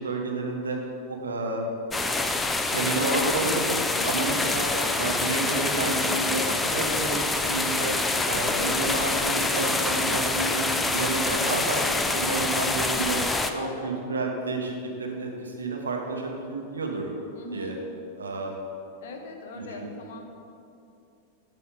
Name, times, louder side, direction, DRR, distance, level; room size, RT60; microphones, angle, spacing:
voice 1, 0.0-1.7 2.7-4.7 5.0-8.0 8.3-17.1 17.5-17.7 18.2-18.6 19.7-19.8, right 2 dB, 75° right, 1 dB, 1.1 m, -30 dB
sound 1, 1.9-13.5, left 2 dB, 10° left, 0.4 m, -26 dB
voice 2, 4.0-4.6 9.6-9.9 13.5-14.2 14.5-14.6 17.3-17.9 19.0-20.3, left 3 dB, 55° left, 4 dB, 0.9 m, -41 dB
10.5 x 4.2 x 5.1 m, 2.6 s
figure-of-eight pair, 90°, 0 cm